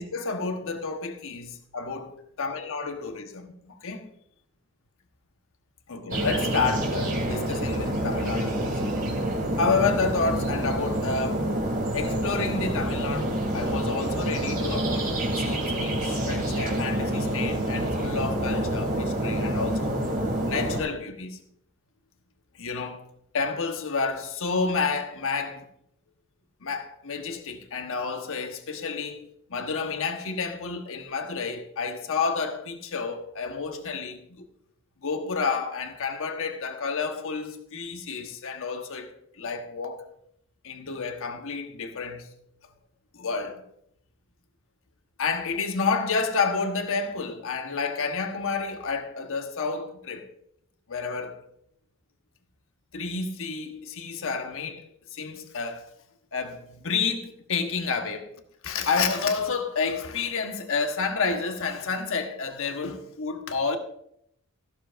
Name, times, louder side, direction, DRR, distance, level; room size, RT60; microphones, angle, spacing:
voice 1, 0.0-2.1 2.4-4.1 5.9-9.0 9.6-11.5 11.9-19.9 20.4-21.4 22.5-23.0 23.3-25.7 26.6-29.2 29.5-34.5 35.0-39.1 39.4-40.0 40.6-42.3 43.1-43.6 45.2-50.3 50.9-51.4 52.9-54.8 55.1-55.9 56.3-58.3 58.6-63.8, left 4 dB, 65° left, 1.2 m, -30 dB
sound 1, 6.1-20.8, right 1 dB, 40° right, 2.5 m, -27 dB
14.0 x 12.5 x 2.6 m
head